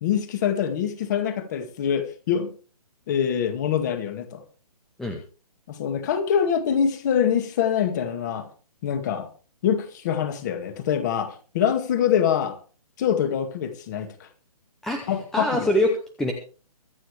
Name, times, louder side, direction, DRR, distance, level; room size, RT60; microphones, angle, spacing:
voice 1, 0.0-2.5 3.1-4.4 5.7-8.5 8.8-9.3 9.6-12.6 13.0-14.1 15.1-15.7, left 8 dB, 30° left, 2.1 m, -24 dB
voice 2, 14.8-16.3, left 1 dB, ahead, 0.7 m, -24 dB
23.5 x 9.1 x 3.4 m
hypercardioid pair, 165°, 20 cm